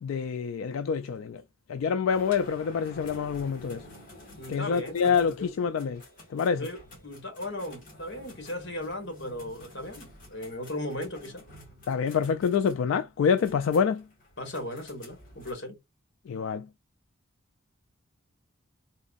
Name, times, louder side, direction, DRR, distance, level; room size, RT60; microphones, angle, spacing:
voice 1, 0.0-1.4 1.7-3.8 4.5-6.0 6.3-6.7 11.9-14.0 16.3-16.7, left 6 dB, 85° left, 0.3 m, -26 dB
sound 1, 2.1-15.5, left 1 dB, 40° left, 2.0 m, -51 dB
voice 2, 4.4-5.5 6.5-11.4 14.4-15.8, left 1 dB, 60° left, 1.5 m, -37 dB
4.0 x 2.5 x 2.4 m
head